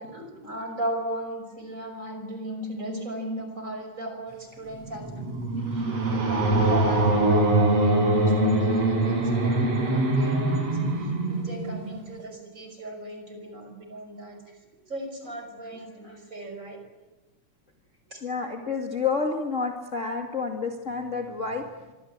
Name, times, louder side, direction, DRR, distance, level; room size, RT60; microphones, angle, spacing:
voice 1, 0.0-14.4 14.9-16.8 18.1-18.2, right 1 dB, 25° right, 4 dB, 6.1 m, -36 dB
sound 1, 4.7-12.1, right 2 dB, 55° right, 6.7 m, -23 dB
voice 2, 18.2-21.9, left 4 dB, 25° left, 2 dB, 2.3 m, -30 dB
26.0 x 24.5 x 8.9 m, 1.1 s
omnidirectional pair, 3.4 m